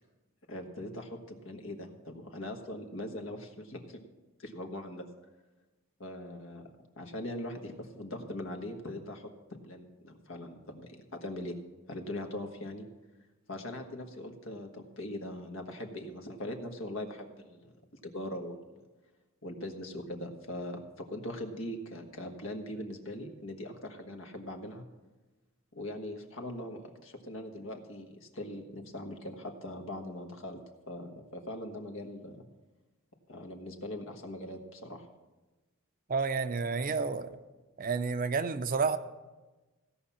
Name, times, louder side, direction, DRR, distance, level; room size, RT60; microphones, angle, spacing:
voice 1, 0.5-4.0 4.4-5.1 6.0-6.7 7.0-11.5 11.9-12.8 13.5-17.8 18.0-18.6 19.4-24.8 25.7-30.6 30.9-32.4 33.3-35.0, left 1 dB, 65° left, 4 dB, 1.5 m, -41 dB
voice 2, 36.1-37.3 37.8-39.0, right 4 dB, 40° right, 10 dB, 0.6 m, -30 dB
16.0 x 5.7 x 7.2 m, 1.2 s
head